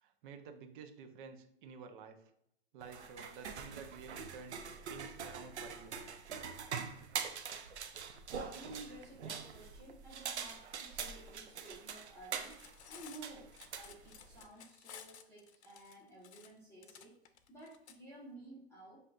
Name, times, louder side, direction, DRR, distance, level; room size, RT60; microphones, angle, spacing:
voice 1, 0.0-2.2 2.7-4.6 4.9-5.9, right 5 dB, 50° right, 6 dB, 0.8 m, -51 dB
sound 1, 2.8-14.4, right 6 dB, 90° right, 0.6 m, -44 dB
voice 2, 8.5-12.6 12.9-17.2 17.5-19.0, right 2 dB, 10° left, -6 dB, 1.3 m, -53 dB
Cutlery silverware, 12.3-18.0, left 8 dB, 80° left, 0.6 m, -55 dB
7.4 x 2.7 x 2.4 m, 0.72 s
hypercardioid pair, 120°, 33 cm